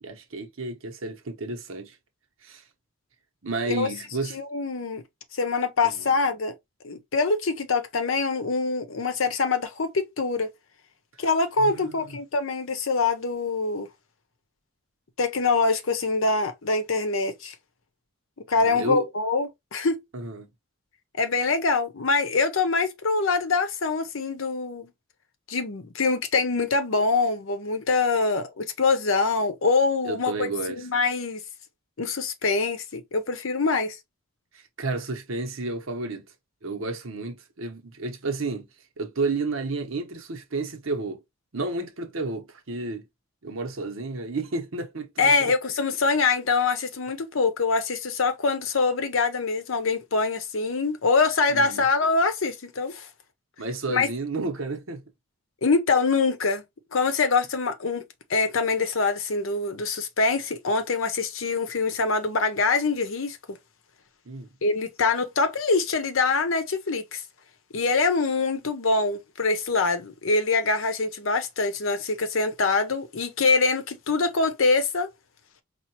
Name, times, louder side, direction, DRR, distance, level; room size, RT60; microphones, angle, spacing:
voice 1, 0.0-2.0 2.4-2.6 3.4-4.4 5.8-6.0 11.6-12.2 18.6-19.0 20.1-20.5 30.0-30.9 34.5-36.3 36.6-38.7 39.0-41.2 41.5-43.1 43.4-45.5 51.5-51.8 53.6-55.0 64.3-64.5, right 3 dB, 80° right, 1.0 m, -31 dB
voice 2, 4.3-5.0 5.3-6.5 6.8-10.5 11.2-13.9 15.2-17.5 18.5-20.0 21.2-24.9 25.5-31.4 32.0-34.0 45.2-53.1 53.9-54.1 55.6-56.6 56.9-58.0 58.3-63.6 64.6-67.2 67.7-75.1, left 4 dB, 80° left, 0.8 m, -24 dB
4.6 x 2.4 x 2.8 m
head